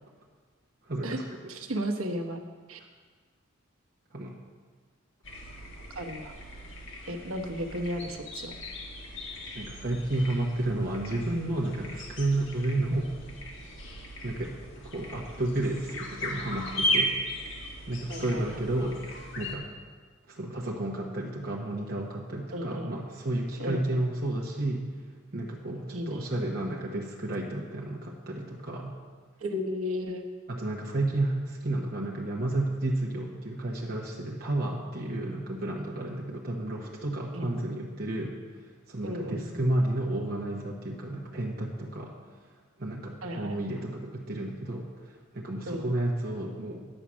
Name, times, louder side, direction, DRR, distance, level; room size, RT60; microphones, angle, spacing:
voice 1, 0.8-1.2 4.1-4.4 9.5-13.1 14.2-14.5 14.8-17.2 17.9-19.0 19.3-19.6 20.3-24.9 25.3-29.0 30.5-38.3 38.6-42.1 42.8-46.9, right 1 dB, 45° right, -3 dB, 1.0 m, -31 dB
voice 2, 1.5-2.4 2.7-2.8 6.0-6.3 7.1-8.6 18.1-18.4 22.5-22.9 23.6-24.0 25.9-26.2 29.4-30.2 37.3-37.5 39.0-39.6 43.2-43.6 45.7-45.9, equal, 85° right, 4 dB, 1.1 m, -34 dB
sound 1, 5.2-19.5, equal, 60° left, 1.7 m, -37 dB
10.0 x 7.2 x 6.2 m, 1.5 s
head